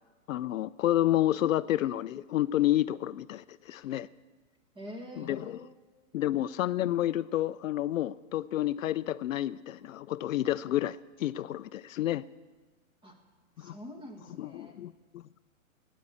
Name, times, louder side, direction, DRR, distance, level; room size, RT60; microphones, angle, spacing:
voice 1, 0.3-4.1 5.2-5.6 6.1-12.2 13.6-13.8 14.4-15.4, left 13 dB, 70° left, 17 dB, 0.5 m, -30 dB
voice 2, 4.8-5.7 13.0-13.2 13.6-14.8, equal, 10° right, 3 dB, 1.7 m, -46 dB
11.0 x 9.5 x 8.5 m, 1.3 s
hypercardioid pair, 140°, 41 cm